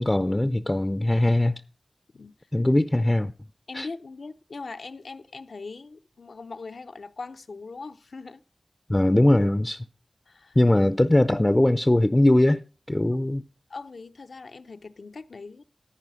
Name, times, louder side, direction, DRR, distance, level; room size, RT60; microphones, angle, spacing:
voice 1, 0.0-1.6 2.5-3.3 3.7-3.9 8.9-9.8 10.6-12.6 12.9-13.4, left 1 dB, 20° left, 0.5 m, -21 dB
voice 2, 3.7-8.4 10.3-10.6 13.7-15.6, left 4 dB, 75° left, 0.7 m, -40 dB
14.0 x 4.9 x 6.2 m
wide cardioid pair, 65°, 0 cm